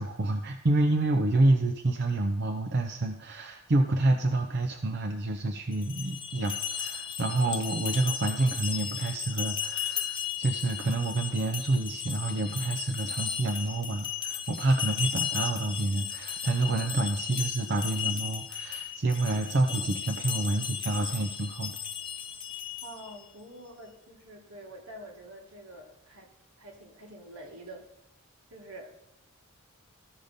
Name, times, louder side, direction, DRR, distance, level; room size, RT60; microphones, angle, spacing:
voice 1, 0.0-21.8, right 2 dB, 50° right, 3 dB, 0.6 m, -28 dB
sound 1, 5.7-23.2, left 8 dB, 20° left, 0.5 m, -35 dB
voice 2, 22.8-26.3 26.6-27.8 28.5-29.0, right 1 dB, 80° right, 1 dB, 1.8 m, -46 dB
14.5 x 5.1 x 4.0 m, 0.82 s
head